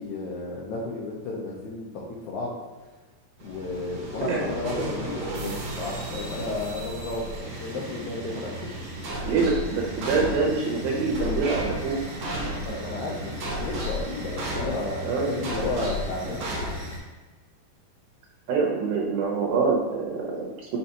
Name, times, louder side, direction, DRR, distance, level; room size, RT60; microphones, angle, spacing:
voice 1, 0.0-2.5 3.4-8.7 9.1-9.2 12.6-16.4, left 2 dB, 80° left, -4 dB, 1.7 m, -33 dB
sound 1, 3.4-17.0, equal, 60° right, 1.7 m, -33 dB
voice 2, 9.2-12.0 15.0-15.3 18.5-20.8, right 4 dB, 75° right, -2 dB, 2.5 m, -25 dB
7.1 x 5.5 x 2.9 m, 1.2 s
omnidirectional pair, 4.5 m